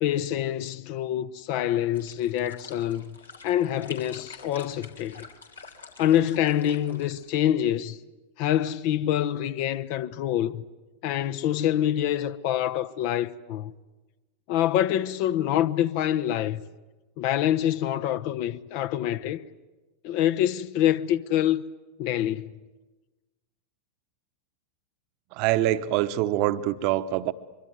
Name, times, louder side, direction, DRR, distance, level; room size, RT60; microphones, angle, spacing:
voice 1, 0.0-3.2 3.4-5.3 6.0-8.0 8.4-10.6 11.0-13.7 14.5-16.6 17.2-19.4 20.0-21.6 22.0-22.5, left 11 dB, 45° left, 1.0 m, -26 dB
sound 1, 1.9-7.3, left 4 dB, 75° left, 3.3 m, -47 dB
voice 2, 25.3-27.3, right 14 dB, 45° right, 1.1 m, -25 dB
24.0 x 24.0 x 9.5 m
figure-of-eight pair, 90°, 0 cm